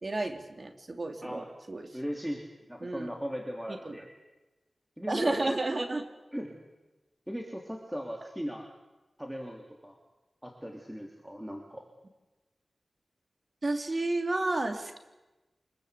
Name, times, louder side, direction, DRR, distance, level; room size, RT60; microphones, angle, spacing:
voice 1, 0.0-1.9 2.8-3.1 3.7-3.9 5.1-6.0 13.6-15.0, right 2 dB, 45° right, 6 dB, 3.0 m, -31 dB
voice 2, 1.9-2.4 2.7-4.1 5.0-5.5 6.3-6.5 7.3-8.6 9.2-10.0 10.4-11.8, equal, 5° right, 1 dB, 3.1 m, -38 dB
25.5 x 21.5 x 8.4 m, 1.1 s
wide cardioid pair, 75°, 0 cm